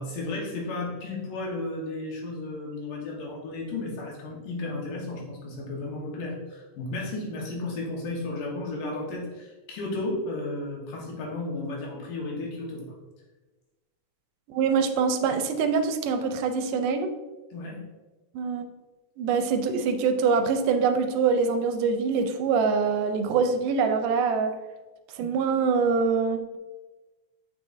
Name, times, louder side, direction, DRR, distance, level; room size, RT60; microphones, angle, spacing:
voice 1, 0.0-12.9 17.5-17.8, left 2 dB, 85° left, -3 dB, 3.0 m, -33 dB
voice 2, 14.5-17.1 18.3-18.6 19.2-24.5 25.2-26.6, right 5 dB, 85° right, 7 dB, 2.2 m, -24 dB
7.5 x 5.2 x 2.6 m, 1.2 s
omnidirectional pair, 3.7 m